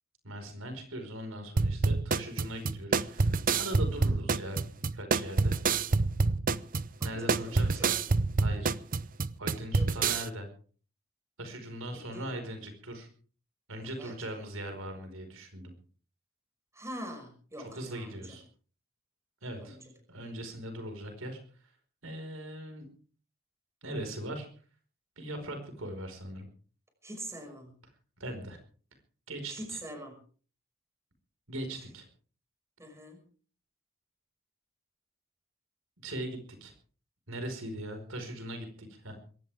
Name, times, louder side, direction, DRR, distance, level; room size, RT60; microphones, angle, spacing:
voice 1, 0.2-5.5 7.0-7.9 8.4-8.7 9.4-10.5 11.4-13.1 13.7-15.7 17.6-18.4 19.4-19.8 20.1-21.4 22.0-22.8 23.8-24.5 25.2-26.5 28.2-28.6 29.3-29.8 31.5-32.1 36.0-36.7 37.3-39.1, right 1 dB, 85° right, 6 dB, 4.9 m, -40 dB
sound 1, 1.6-10.3, right 4 dB, 40° right, 0.7 m, -27 dB
voice 2, 7.0-8.1 9.7-10.1 11.9-12.3 13.8-14.5 16.7-18.4 19.6-19.8 27.0-27.7 29.5-30.2 32.8-33.2, right 1 dB, 15° right, 4 dB, 5.8 m, -44 dB
22.5 x 17.5 x 3.5 m, 0.42 s
head